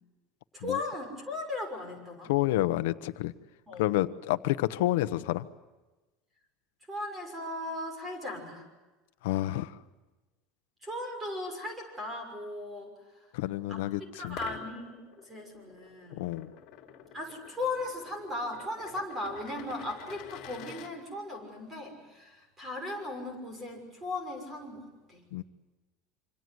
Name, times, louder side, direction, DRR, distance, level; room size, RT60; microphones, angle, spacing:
voice 1, 0.5-2.3 3.7-3.9 6.9-8.6 10.8-12.9 13.7-13.8 14.1-15.0 15.2-16.3 17.1-24.8 25.1-25.3, left 2 dB, 15° right, 5 dB, 6.2 m, -37 dB
voice 2, 2.3-3.3 3.8-5.5 9.2-9.7 13.3-14.4 16.1-16.5 25.3-25.4, left 16 dB, 90° left, 12 dB, 1.0 m, -29 dB
sound 1, 14.2-20.9, left 9 dB, 45° left, 3.2 m, -48 dB
26.5 x 26.5 x 8.0 m, 1.1 s
cardioid pair, 175°, 0 cm